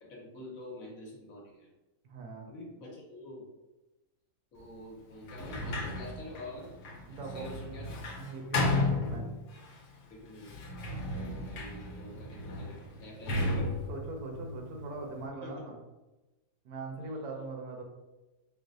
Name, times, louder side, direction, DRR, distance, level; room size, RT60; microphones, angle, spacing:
voice 1, 0.0-1.7 2.5-3.5 4.5-6.8 7.2-8.1 10.1-10.6 11.1-13.7 15.4-15.7, left 1 dB, 60° left, -3 dB, 1.2 m, -46 dB
voice 2, 2.0-2.5 7.1-7.5 8.1-9.3 13.4-15.8 16.6-17.8, right 3 dB, 75° right, 2 dB, 1.1 m, -41 dB
Sliding door, 5.2-9.7 10.4-15.2, left 2 dB, 85° left, 1.2 m, -34 dB
4.7 x 2.1 x 2.5 m, 1.1 s
omnidirectional pair, 1.7 m